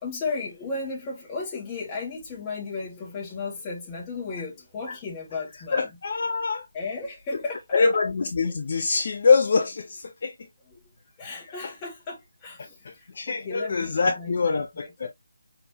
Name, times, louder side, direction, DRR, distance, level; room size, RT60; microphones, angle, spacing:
voice 1, 0.0-5.9 6.7-7.8 11.2-15.1, left 4 dB, 20° left, 1.9 m, -35 dB
voice 2, 5.7-6.7 7.7-10.3 11.6-11.7 12.8-15.1, left 4 dB, 45° left, 0.6 m, -24 dB
5.2 x 4.3 x 2.4 m
figure-of-eight pair, 155°, 0 cm